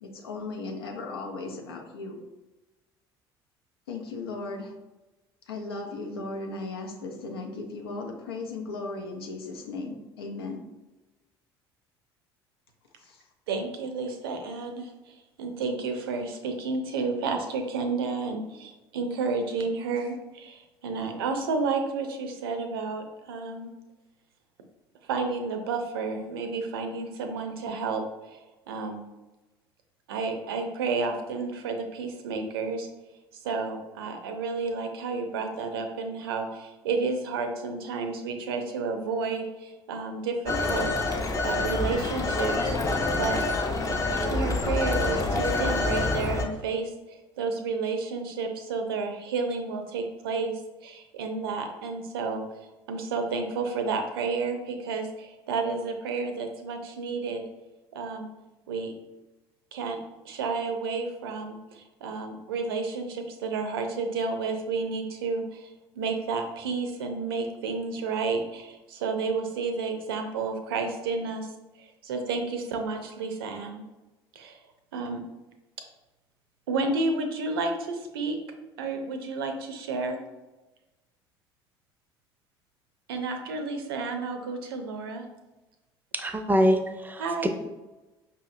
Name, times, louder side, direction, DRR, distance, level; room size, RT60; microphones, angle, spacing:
voice 1, 0.0-2.2 3.9-4.7 5.5-10.6 13.0-13.2, left 3 dB, 75° left, 2 dB, 0.6 m, -36 dB
voice 2, 13.5-14.9 15.4-23.7 25.1-28.4 28.7-29.0 30.1-32.9 33.4-40.9 41.4-42.5 43.2-43.4 44.3-46.9 47.4-52.4 52.9-57.4 57.9-58.3 58.7-58.9 59.7-60.0 60.2-65.7 66.0-71.5 71.8-73.8 74.4-74.6 74.9-75.2 76.7-78.4 78.8-80.2 83.1-85.2 87.2-87.5, right 4 dB, 70° right, 5 dB, 0.5 m, -31 dB
Telephone, 40.5-46.5, left 2 dB, 25° left, 0.6 m, -27 dB
voice 3, 86.1-87.5, equal, 15° right, 7 dB, 0.5 m, -24 dB
5.3 x 2.7 x 2.5 m, 1.1 s
figure-of-eight pair, 55°, 13 cm